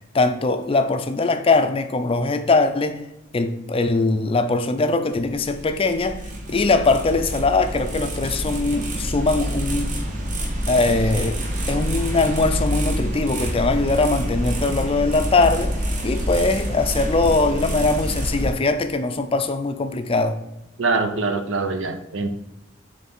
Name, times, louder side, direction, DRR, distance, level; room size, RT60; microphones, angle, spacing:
voice 1, 0.1-3.0 3.3-6.2 6.5-9.9 10.7-11.4 11.7-15.7 16.0-20.4, left 3 dB, 30° left, 9 dB, 0.4 m, -21 dB
sound 1, 5.1-18.5, equal, 40° right, 1.1 m, -27 dB
voice 2, 20.8-22.3, right 3 dB, 85° right, 8 dB, 0.7 m, -23 dB
6.9 x 3.3 x 4.2 m, 0.91 s
head